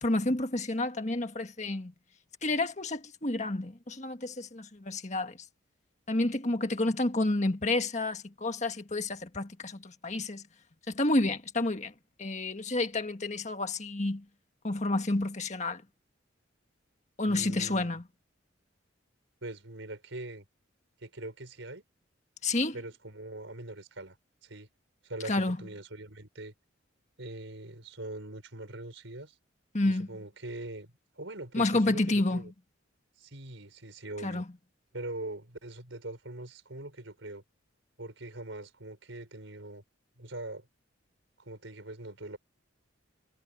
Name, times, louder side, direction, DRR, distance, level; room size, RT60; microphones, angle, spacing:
voice 1, 0.0-1.9 2.4-5.4 6.1-10.4 10.9-11.9 12.2-14.2 14.6-15.8 17.2-18.0 22.4-22.8 25.2-25.6 29.7-30.1 31.5-32.5 34.2-34.4, left 2 dB, 35° left, 1.6 m, -30 dB
voice 2, 17.3-17.9 19.4-20.5 21.0-21.8 22.7-24.2 24.4-24.7 25.0-26.5 27.2-29.4 29.8-32.5 33.2-34.4 34.9-37.4 38.0-39.8 40.2-40.7 41.4-42.4, right 2 dB, 75° right, 4.5 m, -42 dB
head